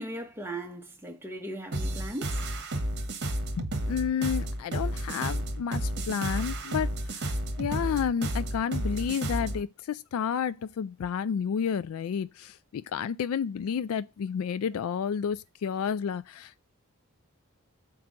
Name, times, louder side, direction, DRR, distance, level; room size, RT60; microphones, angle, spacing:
voice 1, 0.0-2.4, right 1 dB, 10° right, 1.1 m, -38 dB
sound 1, 1.7-9.6, right 1 dB, 50° right, 1.2 m, -31 dB
voice 2, 3.6-16.6, left 7 dB, 70° left, 0.3 m, -31 dB
5.9 x 4.6 x 6.3 m
head